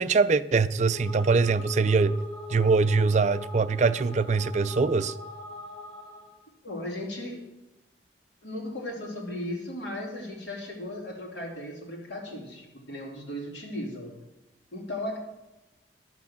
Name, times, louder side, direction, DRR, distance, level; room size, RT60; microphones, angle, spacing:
voice 1, 0.0-2.2 2.5-5.1, right 4 dB, 40° right, 0.4 m, -23 dB
sound 1, 0.7-6.4, left 2 dB, 30° left, 5.1 m, -42 dB
voice 2, 6.6-7.4 8.4-14.1 14.7-15.2, left 1 dB, 85° left, 3.2 m, -36 dB
11.0 x 6.1 x 7.3 m
head